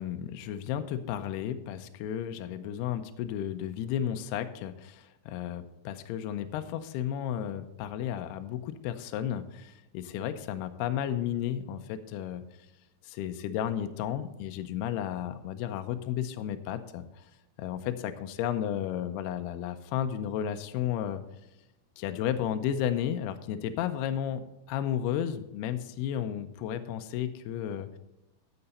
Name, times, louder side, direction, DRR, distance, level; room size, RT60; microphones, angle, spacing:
voice 1, 0.0-12.4 13.0-17.3 17.6-21.2 22.0-28.0, left 10 dB, 80° left, 8 dB, 2.4 m, -33 dB
12.0 x 6.9 x 4.1 m, 0.95 s
omnidirectional pair, 5.2 m